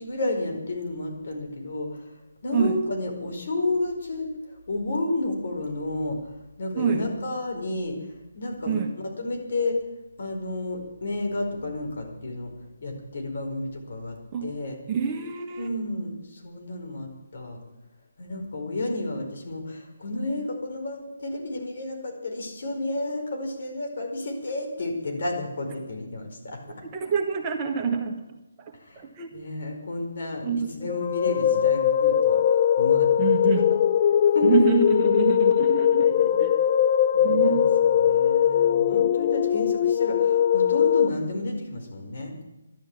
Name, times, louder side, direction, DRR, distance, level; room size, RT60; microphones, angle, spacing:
voice 1, 0.0-2.1 2.4-9.8 10.2-12.5 12.8-14.8 15.6-17.6 18.2-26.6 28.7-29.0 29.3-33.2 34.2-34.7 36.1-36.5 37.1-37.7 37.9-42.3, left 2 dB, 60° left, 3 dB, 4.8 m, -31 dB
voice 2, 14.9-15.7 26.8-29.3 30.4-30.9 33.2-33.7 34.4-36.5 37.2-37.6, right 6 dB, 20° right, 2 dB, 1.5 m, -27 dB
sound 1, 30.8-41.1, left 9 dB, 35° left, 0.4 m, -21 dB
12.5 x 12.0 x 8.5 m, 0.99 s
hypercardioid pair, 160°, 0 cm